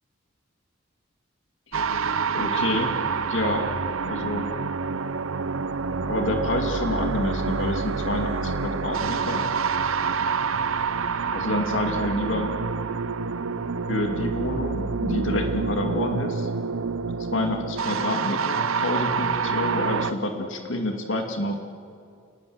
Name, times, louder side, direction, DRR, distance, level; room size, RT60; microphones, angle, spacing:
voice 1, 1.7-2.0 2.3-3.7 4.1-4.5 6.0-9.5 11.3-12.5 13.9-16.5 17.3-21.5, left 1 dB, 65° left, 3 dB, 2.6 m, -28 dB
sound 1, 1.7-20.1, right 5 dB, 80° right, 0.8 m, -27 dB
29.5 x 20.5 x 8.1 m, 2.3 s
head